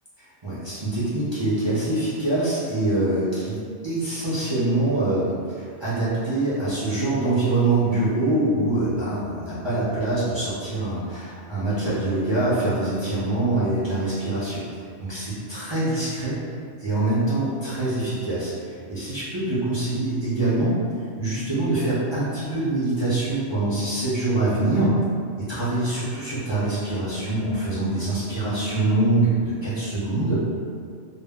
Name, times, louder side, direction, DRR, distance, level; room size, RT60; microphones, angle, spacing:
voice 1, 0.2-14.6 15.0-16.4 16.8-20.7 21.2-25.0 25.4-30.4, right 2 dB, 45° right, -11 dB, 0.3 m, -24 dB
2.1 x 2.0 x 3.4 m, 2.2 s
omnidirectional pair, 1.2 m